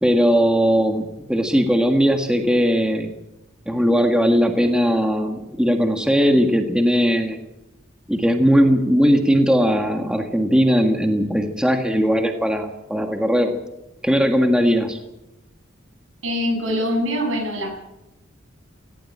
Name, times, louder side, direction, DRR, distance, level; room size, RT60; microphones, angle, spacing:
voice 1, 0.0-3.1 3.7-7.4 8.1-13.5 14.0-15.0, equal, 5° right, 4 dB, 1.7 m, -19 dB
voice 2, 16.2-17.8, equal, 80° right, 4 dB, 7.4 m, -23 dB
18.0 x 17.0 x 8.8 m, 0.90 s
head